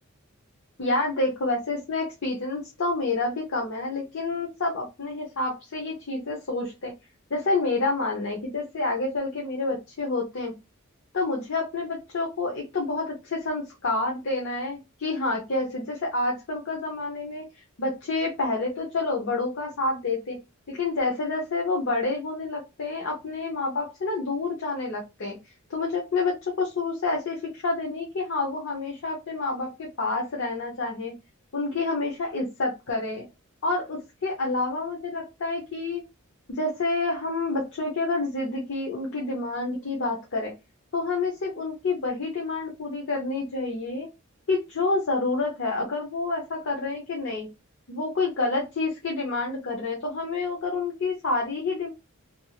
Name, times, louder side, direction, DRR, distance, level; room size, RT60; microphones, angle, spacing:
voice 1, 0.8-6.9 7.3-10.5 11.1-17.4 17.8-20.4 20.7-25.4 25.7-31.1 31.5-33.3 33.6-36.0 36.6-40.5 40.9-44.1 44.5-47.5 47.9-51.9, left 3 dB, 65° left, -1 dB, 0.7 m, -28 dB
2.9 x 2.6 x 2.4 m, 0.24 s
head